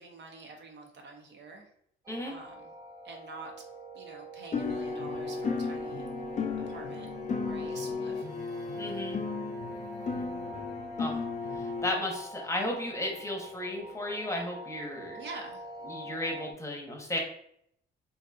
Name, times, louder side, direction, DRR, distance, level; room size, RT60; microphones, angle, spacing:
voice 1, 0.0-1.7 2.2-2.7 3.0-3.5 3.9-6.1 6.7-7.1 7.4-8.3 15.1-15.6, right 3 dB, 60° right, 2 dB, 0.7 m, -46 dB
sound 1, 2.0-16.5, right 1 dB, 20° right, 0.6 m, -45 dB
sound 2, 4.5-11.9, left 4 dB, 35° left, 0.5 m, -34 dB
voice 2, 8.7-9.2 10.1-10.5 11.0-11.2 11.5-15.2 15.8-17.2, left 1 dB, 15° left, 1 dB, 0.9 m, -34 dB
3.9 x 2.6 x 2.3 m, 0.70 s
cardioid pair, 90°, 20 cm